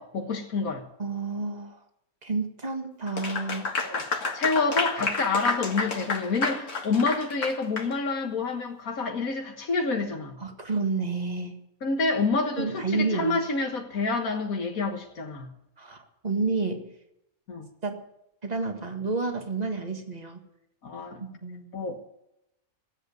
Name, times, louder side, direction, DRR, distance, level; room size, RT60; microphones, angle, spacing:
voice 1, 0.0-0.8 3.8-4.0 4.3-10.4 11.8-15.5 17.5-17.7 20.8-21.2 21.7-22.0, left 3 dB, 75° left, 3 dB, 1.9 m, -28 dB
voice 2, 1.0-1.8 2.2-3.7 10.4-11.6 12.6-13.4 15.8-16.9 17.8-18.0 18.4-20.4 21.2-21.7, right 3 dB, 30° right, 4 dB, 1.9 m, -30 dB
Clapping / Applause, 3.1-7.9, left 4 dB, 60° left, 2.1 m, -30 dB
18.0 x 8.0 x 9.2 m, 0.84 s
omnidirectional pair, 1.5 m